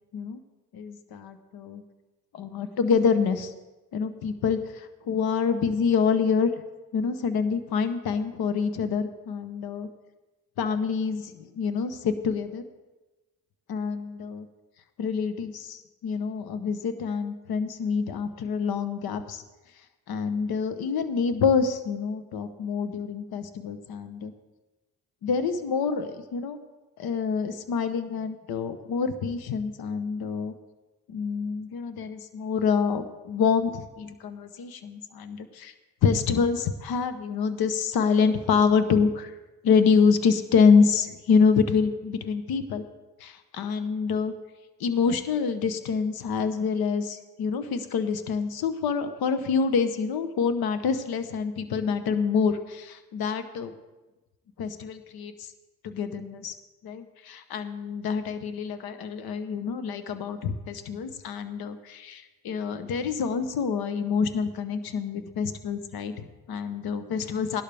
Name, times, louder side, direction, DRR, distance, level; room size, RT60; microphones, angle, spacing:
voice 1, 0.7-1.8 2.3-3.5 3.9-6.5 6.9-9.9 10.6-12.6 13.7-14.5 15.0-19.4 20.1-24.3 25.2-26.6 27.0-30.5 31.1-35.7 36.0-39.3 39.6-42.8 43.2-44.3 44.8-53.7 54.6-55.5 55.8-56.5 56.8-67.6, left 5 dB, 75° left, 10 dB, 1.0 m, -26 dB
17.5 x 11.5 x 3.4 m, 1.1 s
supercardioid pair, 50°, 37 cm